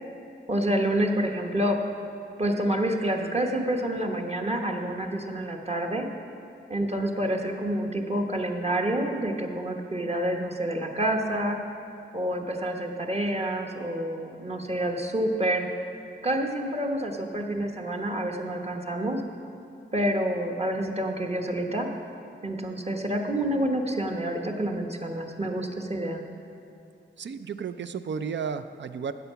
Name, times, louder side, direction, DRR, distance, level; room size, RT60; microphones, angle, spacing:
voice 1, 0.5-1.8 2.4-6.1 6.7-11.6 12.1-15.7 16.2-19.2 19.9-21.9 22.4-26.2, right 1 dB, 30° right, 2 dB, 1.2 m, -28 dB
voice 2, 27.2-29.1, right 6 dB, 65° right, 11 dB, 0.5 m, -33 dB
14.0 x 8.2 x 5.7 m, 2.5 s
wide cardioid pair, 140°, 20 cm